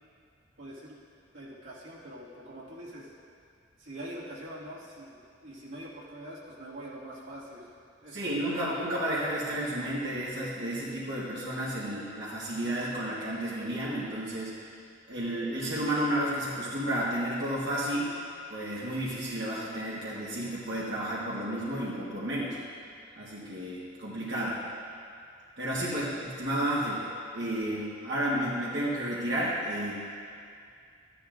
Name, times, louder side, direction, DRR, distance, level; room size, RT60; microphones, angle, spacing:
voice 1, 0.6-1.0 1.3-3.1 3.8-7.7 8.0-8.6 25.8-26.1, right 1 dB, 85° right, -6 dB, 2.0 m, -44 dB
voice 2, 8.1-14.7 15.1-18.1 18.5-22.6 23.2-24.6 25.6-27.0 27.3-29.9, right 1 dB, 60° right, -7 dB, 1.4 m, -32 dB
13.5 x 11.0 x 2.6 m, 2.4 s
head